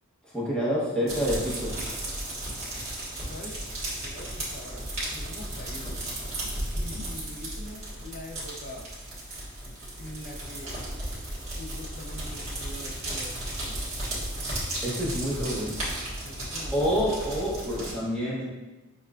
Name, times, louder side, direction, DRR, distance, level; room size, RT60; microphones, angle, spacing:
voice 1, 0.3-1.7 14.8-15.8 16.7-18.4, equal, 5° left, -7 dB, 1.0 m, -27 dB
sound 1, 1.1-17.9, right 1 dB, 35° right, 1.5 m, -34 dB
voice 2, 3.3-3.7 4.0-4.9 5.1-6.0 6.8-8.9 10.0-10.7 11.4-13.9 16.2-17.0, left 1 dB, 50° left, 1 dB, 0.6 m, -43 dB
6.7 x 2.3 x 2.4 m, 1.1 s
head